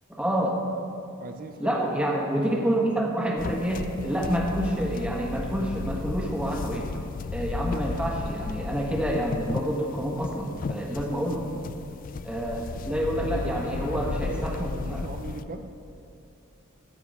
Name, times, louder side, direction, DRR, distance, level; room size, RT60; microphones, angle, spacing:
voice 1, 0.1-0.6 1.6-6.9 7.3-11.4 12.2-15.0, right 1 dB, 5° right, -2 dB, 1.5 m, -28 dB
voice 2, 1.2-2.1 13.2-15.7, right 3 dB, 40° right, 7 dB, 0.5 m, -38 dB
sound 1, 3.4-15.4, left 4 dB, 40° left, 0.3 m, -34 dB
15.0 x 5.0 x 8.0 m, 2.6 s
head